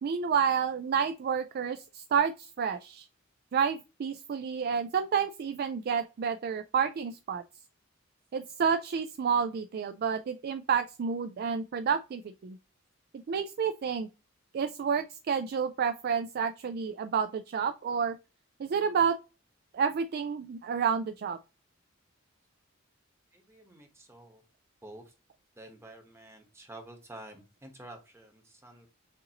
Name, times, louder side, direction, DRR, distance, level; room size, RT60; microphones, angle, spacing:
voice 1, 0.0-3.1 3.5-7.4 8.3-12.6 13.3-14.1 14.5-18.2 18.6-19.2 19.7-21.4, right 6 dB, 50° right, 0.3 m, -30 dB
voice 2, 23.3-24.4 24.8-25.1 25.6-28.9, right 1 dB, 15° right, 1.1 m, -49 dB
6.6 x 2.6 x 2.9 m
head